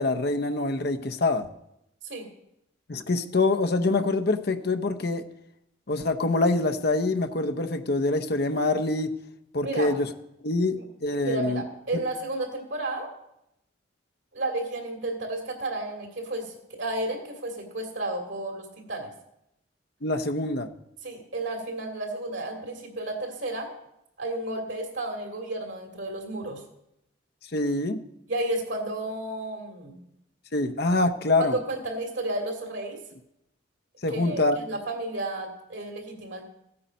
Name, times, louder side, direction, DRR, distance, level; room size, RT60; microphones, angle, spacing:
voice 1, 0.0-1.5 2.9-5.3 5.9-9.1 9.5-10.1 10.4-11.6 20.0-20.7 27.5-28.0 30.5-31.6 34.0-34.6, left 2 dB, 50° left, 7 dB, 0.7 m, -25 dB
voice 2, 9.6-9.9 11.2-13.1 14.3-19.1 21.0-23.7 24.2-26.6 28.3-30.0 31.4-33.0 34.1-36.5, right 2 dB, 65° right, 3 dB, 2.6 m, -32 dB
15.5 x 8.6 x 5.2 m, 0.83 s
head